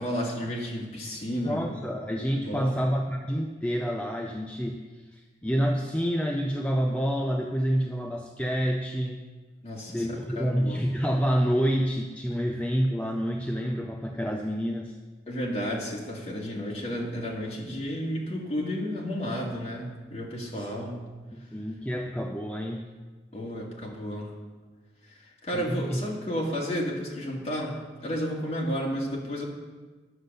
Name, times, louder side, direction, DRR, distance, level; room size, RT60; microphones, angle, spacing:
voice 1, 0.0-1.6 2.3-2.8 9.6-10.1 10.4-10.8 15.3-21.0 23.3-24.3 25.2-29.4, equal, 35° left, -3 dB, 2.0 m, -32 dB
voice 2, 1.4-9.3 9.9-15.0 20.5-20.9 21.3-22.9 25.5-26.0, equal, 5° left, 1 dB, 0.4 m, -28 dB
9.9 x 6.5 x 6.6 m, 1.4 s
head